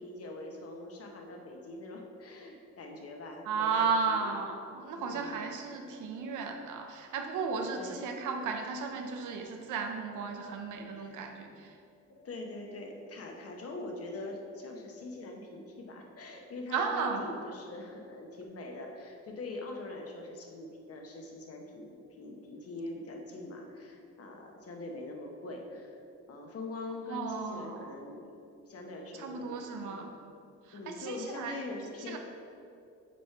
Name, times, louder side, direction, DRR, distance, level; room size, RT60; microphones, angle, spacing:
voice 1, 0.0-4.4 4.9-5.5 7.8-8.0 10.9-11.3 12.1-26.0 26.3-28.3 28.7-30.0 30.7-32.2, left 2 dB, 50° left, 2 dB, 1.0 m, -43 dB
voice 2, 3.5-11.5 16.7-17.2 27.1-27.9 29.2-30.1 30.9-31.5 32.1-32.2, right 5 dB, 85° right, 4 dB, 0.8 m, -34 dB
6.2 x 4.4 x 4.5 m, 2.6 s
cardioid pair, 90°, 30 cm